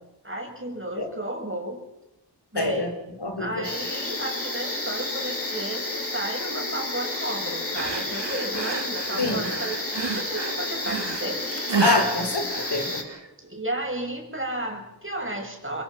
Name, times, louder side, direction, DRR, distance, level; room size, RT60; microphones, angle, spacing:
voice 1, 0.2-1.8 2.5-2.9 3.4-11.8 13.4-15.8, right 1 dB, 30° right, 1 dB, 6.9 m, -33 dB
voice 2, 2.6-2.9 3.2-3.7 9.2-9.5 11.8-13.0, left 2 dB, 70° left, 5 dB, 4.2 m, -25 dB
sound 1, 3.6-13.0, left 2 dB, 35° left, 6.2 m, -31 dB
sound 2, 7.7-13.3, right 4 dB, 90° right, 2.1 m, -31 dB
28.5 x 22.0 x 6.0 m, 0.90 s
wide cardioid pair, 45°, 41 cm